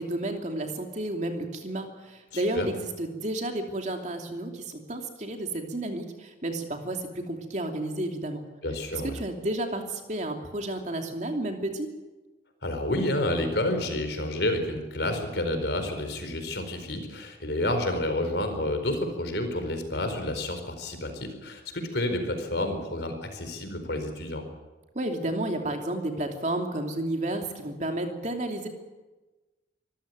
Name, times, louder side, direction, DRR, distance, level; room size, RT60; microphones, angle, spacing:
voice 1, 0.0-8.4 9.0-11.9 24.9-28.7, right 1 dB, 40° right, 4 dB, 2.9 m, -31 dB
voice 2, 2.3-2.7 8.6-9.2 12.6-24.5, left 1 dB, 65° left, 7 dB, 4.5 m, -29 dB
25.0 x 15.0 x 9.4 m, 1.2 s
head